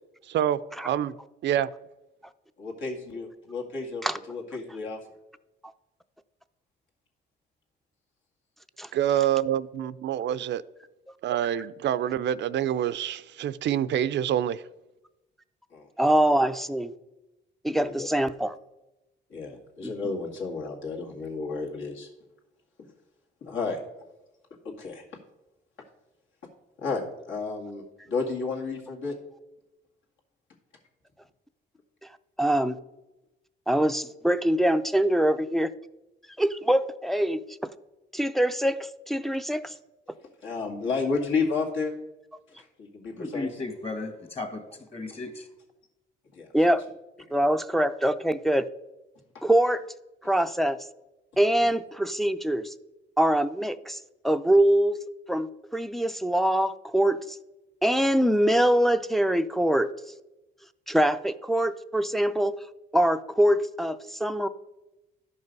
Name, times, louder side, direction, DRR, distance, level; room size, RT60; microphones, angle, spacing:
voice 1, 0.3-0.6 0.8-1.1 1.4-1.7 8.9-10.6 11.2-14.6, right 11 dB, 65° right, 14 dB, 0.4 m, -26 dB
voice 2, 2.6-5.0 15.7-15.9 17.7-18.1 19.3-22.1 22.8-22.9 23.4-23.8 24.6-25.0 26.8-29.2 40.4-41.9 42.5-43.5 46.3-46.5 49.3-49.4, left 4 dB, 75° left, 0 dB, 2.1 m, -32 dB
voice 3, 16.0-16.9 17.6-18.5 19.8-19.9 32.4-32.8 33.7-35.7 36.4-37.4 38.1-39.7 46.5-46.8 47.3-48.7 49.4-49.8 50.2-50.8 51.4-52.7 53.2-54.0 54.2-57.4 57.8-59.9 60.9-62.5 62.9-64.5, right 1 dB, ahead, 9 dB, 0.4 m, -24 dB
voice 4, 43.2-45.5, left 2 dB, 30° left, 6 dB, 1.8 m, -35 dB
12.0 x 5.5 x 5.3 m, 1.0 s
cardioid pair, 90°, 20 cm